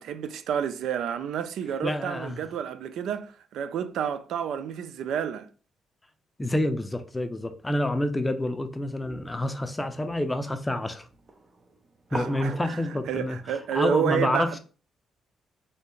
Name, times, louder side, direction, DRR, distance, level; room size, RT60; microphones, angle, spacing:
voice 1, 0.0-5.5 12.1-12.8 13.1-14.6, right 9 dB, 75° right, 0.3 m, -30 dB
voice 2, 1.8-2.4 6.4-11.1 12.1-14.6, left 1 dB, 15° left, 0.5 m, -28 dB
sound 1, 9.0-14.0, right 2 dB, 40° right, 0.7 m, -43 dB
3.2 x 2.8 x 3.0 m
supercardioid pair, 65°, 0 cm